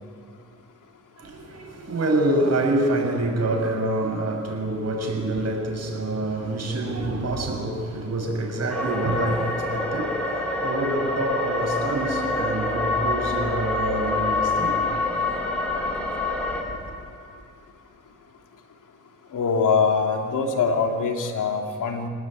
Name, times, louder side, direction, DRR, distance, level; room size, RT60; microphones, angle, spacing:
voice 1, 1.2-15.8 16.6-16.9, right 1 dB, 55° right, 7.1 m, -27 dB
sound 1, 8.7-16.6, left 2 dB, 5° left, 6.1 m, -26 dB
voice 2, 19.3-22.1, left 5 dB, 80° left, 3.0 m, -23 dB
27.5 x 19.0 x 9.2 m
cardioid pair, 60°, 31 cm